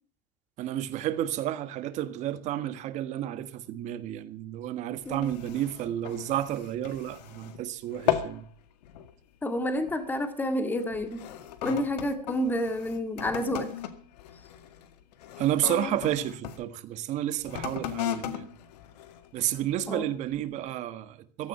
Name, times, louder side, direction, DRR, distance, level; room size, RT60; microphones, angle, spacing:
voice 1, 0.6-8.5 15.4-18.5 19.3-21.5, right 12 dB, 35° right, 1.5 m, -31 dB
sound 1, 5.0-7.6 7.9-8.5 8.8-9.1 9.8-10.1 10.8-16.6 17.4-19.7 20.3-20.4, left 11 dB, 75° left, 2.0 m, -36 dB
voice 2, 5.1-5.4 8.1-8.2 9.4-11.3 11.6-13.7 19.9-20.1, left 1 dB, 10° left, 1.9 m, -29 dB
16.0 x 14.0 x 5.6 m
supercardioid pair, 160°, 21 cm